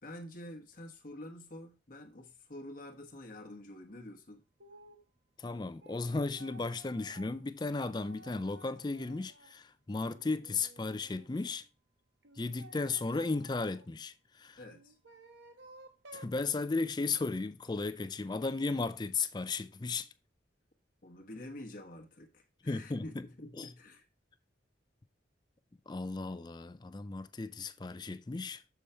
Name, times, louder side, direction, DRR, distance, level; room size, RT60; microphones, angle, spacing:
voice 1, 0.0-4.4 14.6-15.0 21.0-24.1, left 1 dB, 45° left, 1.0 m, -48 dB
sound 1, 4.6-5.0 5.5-9.6 10.0-11.5 12.2-13.9 14.7-16.4, right 2 dB, 75° right, 1.2 m, -56 dB
voice 2, 5.4-11.6 12.4-14.6 16.1-20.1 22.6-23.0 23.6-23.7 25.9-28.6, left 3 dB, 20° left, 0.4 m, -35 dB
6.9 x 4.7 x 5.5 m
head